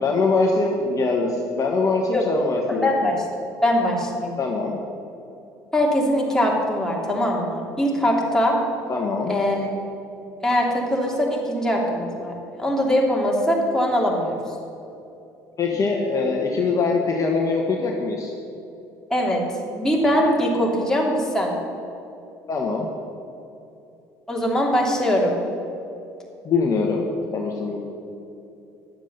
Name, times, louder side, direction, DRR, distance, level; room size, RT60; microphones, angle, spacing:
voice 1, 0.0-3.1 4.4-4.8 8.9-9.3 15.6-18.3 22.5-22.9 26.4-27.1 27.3-27.8, left 3 dB, 40° left, 0 dB, 1.3 m, -23 dB
voice 2, 2.8-3.1 3.6-4.3 5.7-8.6 9.3-9.7 10.4-12.3 12.6-14.4 19.1-19.4 19.7-21.5 24.3-25.4, equal, 5° left, -2 dB, 2.7 m, -21 dB
10.5 x 7.4 x 6.7 m, 2.8 s
supercardioid pair, 75°, 9 cm